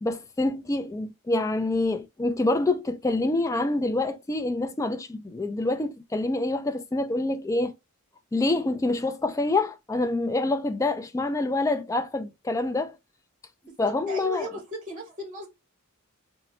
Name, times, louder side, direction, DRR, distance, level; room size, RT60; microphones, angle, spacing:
voice 1, 0.0-7.7 8.3-12.9 13.8-14.5, left 2 dB, 15° left, 0.3 m, -26 dB
voice 2, 13.6-15.5, equal, 35° right, 1.6 m, -36 dB
3.8 x 2.2 x 3.0 m
head